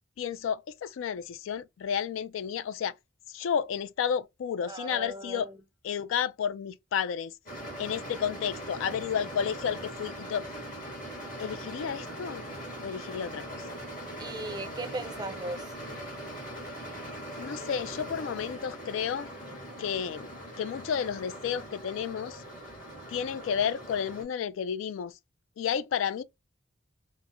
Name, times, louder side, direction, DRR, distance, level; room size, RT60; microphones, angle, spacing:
voice 1, 0.2-2.9 3.3-5.5 5.8-7.3 7.8-10.5 11.4-12.4 12.8-13.6 17.4-19.3 19.8-20.3 20.6-22.4 23.1-25.1 25.6-26.2, left 7 dB, 85° left, 0.3 m, -31 dB
voice 2, 4.7-5.6 14.2-15.7, right 2 dB, 20° right, 0.4 m, -37 dB
sound 1, 7.5-24.2, equal, 45° left, 1.5 m, -41 dB
4.4 x 2.0 x 2.5 m
head